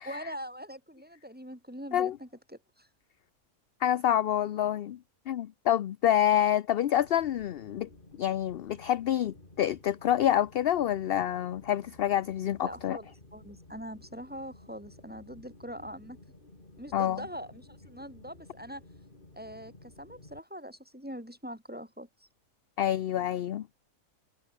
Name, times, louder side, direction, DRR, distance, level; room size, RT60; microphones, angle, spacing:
voice 1, 0.0-2.9 12.6-13.1 13.3-16.2 16.8-18.8 19.3-22.3, equal, 5° right, 4.5 m, -43 dB
voice 2, 3.8-5.0 5.3-7.9 8.2-13.0 16.9-17.2 22.8-23.7, left 11 dB, 60° left, 0.6 m, -27 dB
sound 1, 6.9-20.4, left 2 dB, 35° left, 4.0 m, -54 dB
omnidirectional pair, 1.5 m